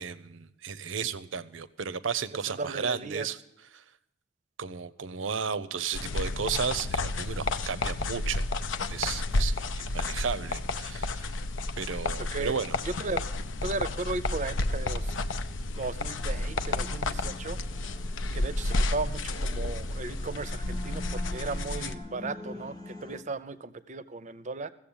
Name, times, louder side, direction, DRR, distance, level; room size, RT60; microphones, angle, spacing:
voice 1, 0.0-3.4 3.7-3.8 4.6-8.5 8.9-11.4 11.8-12.8, right 6 dB, 90° right, 15 dB, 0.6 m, -34 dB
voice 2, 2.5-3.3 12.3-12.6 12.8-13.3 13.6-15.1 15.8-17.6 18.3-24.7, right 3 dB, 40° right, 15 dB, 0.6 m, -36 dB
sound 1, 5.9-21.9, left 2 dB, 80° left, 0.7 m, -31 dB
sound 2, 16.2-23.2, left 2 dB, 20° left, 0.8 m, -44 dB
15.0 x 7.6 x 8.7 m, 0.84 s
head